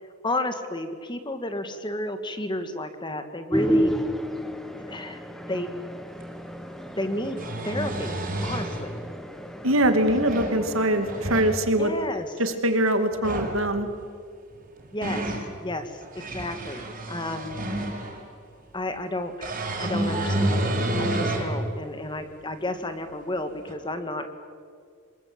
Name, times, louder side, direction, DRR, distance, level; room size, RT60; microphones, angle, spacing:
voice 1, 0.2-3.9 4.8-5.2 5.5-5.7 7.0-9.0 11.8-12.3 14.9-17.6 18.7-24.3, left 1 dB, 20° left, 8 dB, 1.8 m, -32 dB
sound 1, 3.5-11.4, equal, ahead, 1.5 m, -31 dB
sound 2, 6.2-6.3 7.1-8.8 9.8-10.6 11.0-11.5 13.1-13.6 14.5-15.5 16.0-18.2 19.4-21.5 22.1-22.2 23.7-23.8, right 1 dB, 40° right, 5.8 m, -29 dB
voice 2, 9.6-11.9 12.4-13.9, right 1 dB, 70° right, 7 dB, 2.6 m, -23 dB
26.5 x 22.0 x 8.8 m, 2.1 s
head